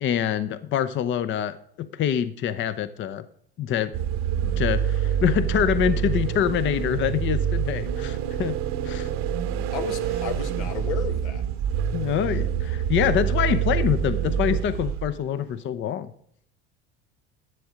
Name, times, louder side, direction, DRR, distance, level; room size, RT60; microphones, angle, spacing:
voice 1, 0.0-3.2 3.6-3.9 4.4-8.6 8.8-9.1 11.9-16.1, left 9 dB, 35° left, 14 dB, 0.6 m, -25 dB
sound 1, 3.9-15.2, right 8 dB, 55° right, 1.0 m, -26 dB
voice 2, 9.7-11.4, left 6 dB, 85° left, 7 dB, 1.5 m, -33 dB
11.0 x 7.1 x 5.1 m, 0.65 s
hypercardioid pair, 90°, 33 cm